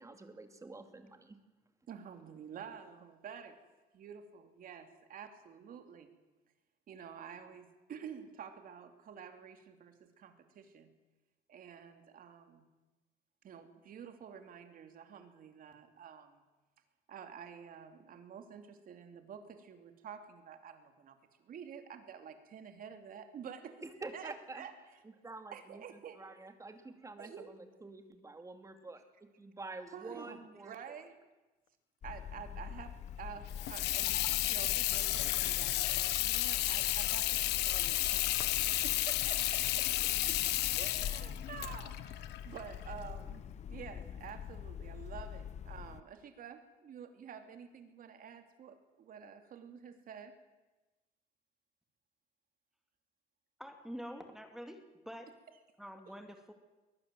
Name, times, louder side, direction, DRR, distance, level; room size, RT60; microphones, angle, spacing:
voice 1, 0.0-1.4 23.8-24.7 25.0-31.0, right 3 dB, 20° right, 7 dB, 2.6 m, -48 dB
voice 2, 1.9-3.6 3.9-6.1 6.9-10.9 11.5-12.6 13.4-16.4 17.1-23.8 24.1-24.7 25.5-26.2 27.2-27.5 29.9-31.2 32.0-38.6 38.8-40.4 40.8-43.4 43.7-50.3, right 7 dB, 55° right, 7 dB, 3.0 m, -49 dB
sound 1, 32.0-46.0, left 8 dB, 45° left, 0.9 m, -45 dB
Water tap faucet / Sink (filling or washing), 33.5-43.1, left 15 dB, 85° left, 1.3 m, -32 dB
voice 3, 53.6-55.4 55.8-56.5, equal, ahead, 6 dB, 2.3 m, -47 dB
21.5 x 19.5 x 7.8 m, 1.1 s
cardioid pair, 110°, 17 cm